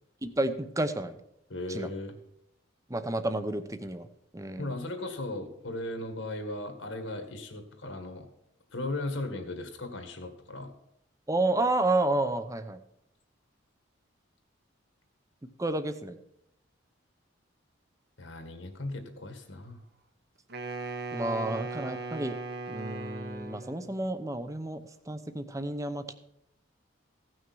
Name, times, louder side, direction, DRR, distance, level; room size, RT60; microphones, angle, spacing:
voice 1, 0.2-1.2 1.7-1.9 2.9-4.1 4.3-4.7 11.3-12.8 15.6-16.2 21.1-22.4 22.7-26.1, right 2 dB, 15° right, 10 dB, 0.7 m, -30 dB
voice 2, 1.5-2.1 4.6-8.3 8.7-10.7 18.2-19.8, left 2 dB, 75° left, 6 dB, 1.9 m, -37 dB
Wind instrument woodwind instrument, 20.5-24.0, right 3 dB, 55° right, 1.1 m, -38 dB
16.0 x 6.4 x 6.2 m, 0.80 s
head